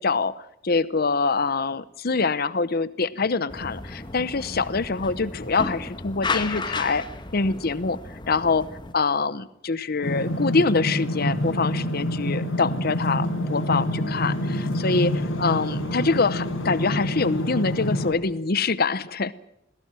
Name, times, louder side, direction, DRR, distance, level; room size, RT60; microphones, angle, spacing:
voice 1, 0.0-7.0 7.3-8.7 8.9-19.3, left 4 dB, 50° left, 17 dB, 0.8 m, -25 dB
sound 1, 3.5-8.9, left 3 dB, 25° left, 1.4 m, -33 dB
sound 2, 10.0-18.1, equal, 90° left, 4.8 m, -27 dB
21.0 x 17.0 x 9.1 m, 0.80 s
head